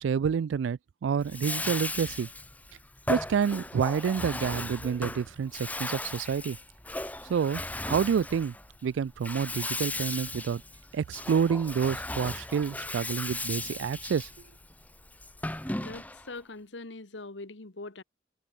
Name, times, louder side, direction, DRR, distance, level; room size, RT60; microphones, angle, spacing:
voice 1, 0.0-2.3 3.1-6.6 7.3-8.5 8.8-10.6 10.9-14.3, right 7 dB, 85° right, 0.3 m, -28 dB
Bathtub (filling or washing), 1.2-16.3, left 2 dB, 10° left, 1.5 m, -37 dB
voice 2, 15.8-18.0, left 2 dB, 80° left, 1.6 m, -42 dB
head